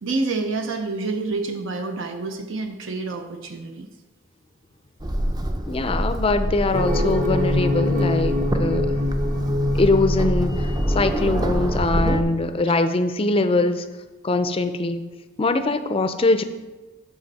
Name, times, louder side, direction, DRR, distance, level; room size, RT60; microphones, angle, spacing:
voice 1, 0.0-3.9 5.8-6.0 12.7-12.8, right 3 dB, 70° right, 5 dB, 0.7 m, -28 dB
sound 1, 5.0-12.2, equal, 20° right, 0.5 m, -25 dB
voice 2, 5.7-8.9 9.7-13.8 14.2-15.1 15.4-16.4, left 2 dB, 30° left, 10 dB, 0.4 m, -22 dB
sound 2, 6.7-11.8, left 2 dB, 40° right, 0.9 m, -25 dB
12.0 x 4.1 x 4.1 m, 1.2 s
head